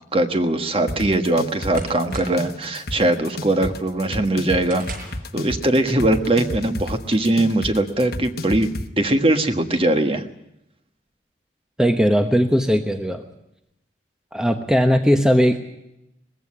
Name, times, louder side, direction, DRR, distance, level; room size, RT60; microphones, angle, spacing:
voice 1, 0.1-4.8 5.3-10.2, right 1 dB, 30° right, 7 dB, 1.5 m, -21 dB
sound 1, 0.9-8.9, left 1 dB, 55° left, 1.3 m, -31 dB
sound 2, 0.9-2.6 3.0-3.4 3.8-5.3, right 3 dB, 50° right, 5.5 m, -41 dB
voice 2, 11.8-13.2 14.3-15.6, equal, 5° right, 6 dB, 1.1 m, -18 dB
20.5 x 15.5 x 9.8 m, 0.82 s
head